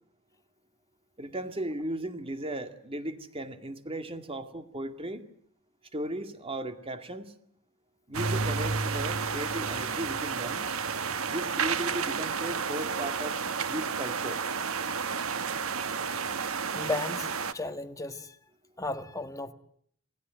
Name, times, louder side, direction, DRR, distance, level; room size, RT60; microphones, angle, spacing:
voice 1, 1.2-5.3 5.9-7.3 8.1-10.7 11.3-13.4 13.7-14.4, right 1 dB, 25° right, 2.1 m, -36 dB
sound 1, 8.1-17.5, right 5 dB, 85° right, 1.3 m, -31 dB
voice 2, 16.7-18.4 18.8-19.5, left 2 dB, 15° left, 1.6 m, -35 dB
28.0 x 18.0 x 9.1 m
head